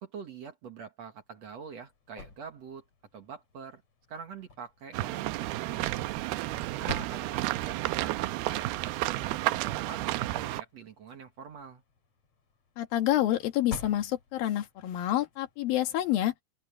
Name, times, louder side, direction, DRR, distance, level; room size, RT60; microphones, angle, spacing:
voice 1, 0.0-2.8 3.1-3.8 4.1-6.1 6.5-11.8, right 6 dB, 55° right, 2.3 m, -45 dB
sound 1, 1.2-15.8, left 4 dB, 45° left, 4.4 m, -50 dB
sound 2, 4.9-10.6, right 17 dB, 85° right, 2.5 m, -31 dB
voice 2, 12.8-16.3, left 13 dB, 70° left, 3.5 m, -28 dB
open air
omnidirectional pair, 4.4 m